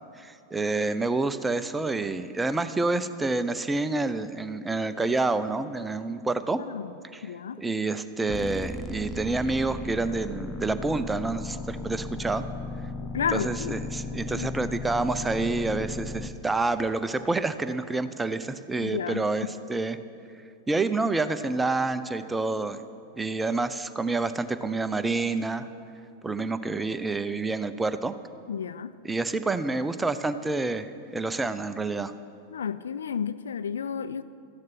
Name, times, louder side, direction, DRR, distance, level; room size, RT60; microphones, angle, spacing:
voice 1, 0.2-6.6 7.1-7.3 7.6-12.4 13.3-20.0 20.7-22.8 23.2-25.7 26.2-28.1 29.0-32.1, right 3 dB, 10° right, 11 dB, 0.6 m, -28 dB
voice 2, 6.6-6.9 7.2-7.6 13.1-13.8 14.3-14.5 18.8-19.5 28.5-28.9 32.5-34.2, left 7 dB, 65° left, 13 dB, 0.4 m, -32 dB
sound 1, 8.3-16.3, left 3 dB, 15° left, 0.9 m, -36 dB
14.0 x 10.5 x 6.0 m, 2.5 s
figure-of-eight pair, 90°, 0 cm